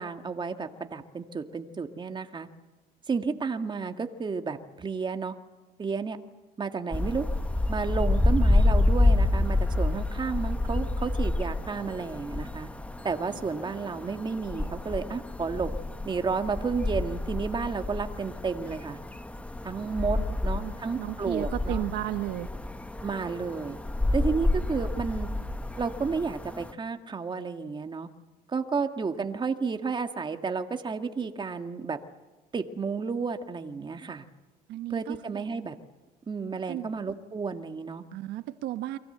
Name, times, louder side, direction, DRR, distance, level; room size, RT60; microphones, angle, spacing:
voice 1, 0.0-2.5 3.1-5.4 5.8-6.2 6.6-7.3 7.7-12.7 13.0-15.7 16.1-19.0 19.6-21.8 23.0-23.8 24.1-25.3 25.8-28.1 28.5-32.0 32.5-34.2 34.9-35.8 36.3-38.0, right 5 dB, 25° right, 7 dB, 1.9 m, -32 dB
sound 1, 6.9-26.7, left 2 dB, 10° left, 1.3 m, -28 dB
voice 2, 20.6-22.5 34.7-35.4 36.7-36.9 38.1-39.0, right 15 dB, 85° right, 10 dB, 1.2 m, -34 dB
29.5 x 23.5 x 8.0 m, 1.1 s
cardioid pair, 110°, 17 cm